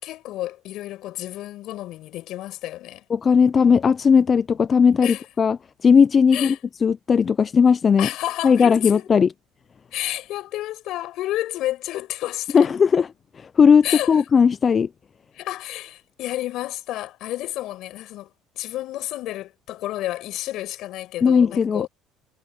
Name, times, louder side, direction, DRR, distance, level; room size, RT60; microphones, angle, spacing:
voice 1, 0.0-3.0 5.0-5.2 6.3-6.6 8.0-9.0 9.9-12.7 13.8-14.2 15.3-18.3 18.6-21.9, left 15 dB, 65° left, 5.3 m, -30 dB
voice 2, 3.1-5.6 5.8-6.6 6.8-8.1 8.4-9.3 12.5-13.1 13.4-14.9 21.2-21.9, left 6 dB, 35° left, 0.4 m, -17 dB
cardioid pair, 110°, 0 cm